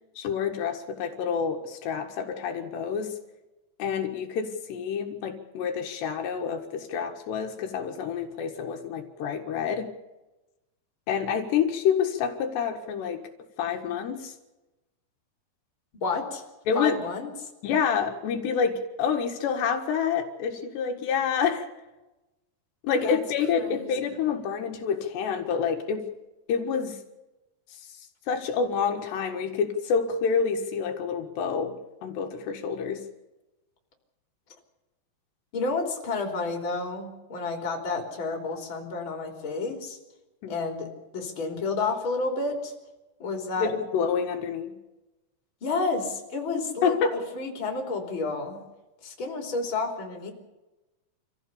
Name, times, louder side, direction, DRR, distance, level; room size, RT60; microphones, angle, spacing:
voice 1, 0.2-3.2 3.8-9.9 11.1-13.2 13.6-14.3 16.7-17.0 17.6-21.7 22.8-26.1 26.5-27.0 28.3-33.0 40.4-40.6 43.6-44.8 46.8-47.2, left 6 dB, 80° left, 4 dB, 3.8 m, -28 dB
voice 2, 15.9-16.4 16.7-17.3 23.0-23.2 23.6-23.9 35.5-40.0 40.5-42.7 43.2-43.7 45.6-48.6 49.0-50.3, left 3 dB, 30° left, 2 dB, 3.8 m, -30 dB
26.5 x 15.0 x 7.1 m, 1.0 s
omnidirectional pair, 4.8 m